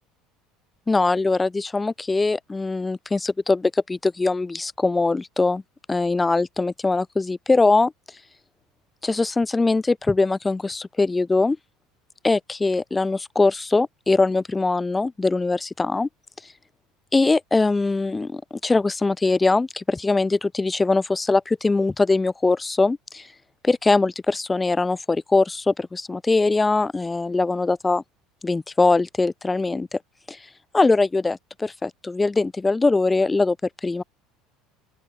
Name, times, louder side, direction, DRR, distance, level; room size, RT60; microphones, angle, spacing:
voice 1, 0.9-5.6 5.9-7.9 9.0-11.6 12.2-16.1 17.1-23.3 23.6-28.0 28.4-30.0 30.3-30.4 30.7-33.6 33.8-34.0, left 3 dB, 15° left, 3.2 m, -22 dB
open air
hypercardioid pair, 70°, 0 cm